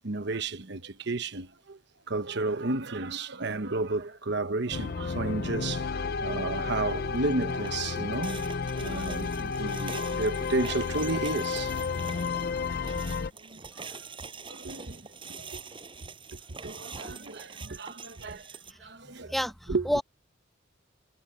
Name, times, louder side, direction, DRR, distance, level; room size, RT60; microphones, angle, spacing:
voice 1, 0.0-1.8 2.1-8.5 8.8-12.0 13.4-14.0 14.5-15.6 16.3-18.5 18.8-19.3 19.7-19.9, right 3 dB, 60° right, 1.1 m, -33 dB
sound 1, 4.7-13.3, left 5 dB, 50° left, 0.5 m, -32 dB
sound 2, 6.3-6.7 7.1-18.7, right 5 dB, 25° right, 5.5 m, -45 dB
voice 2, 19.0-20.0, equal, ahead, 0.9 m, -30 dB
head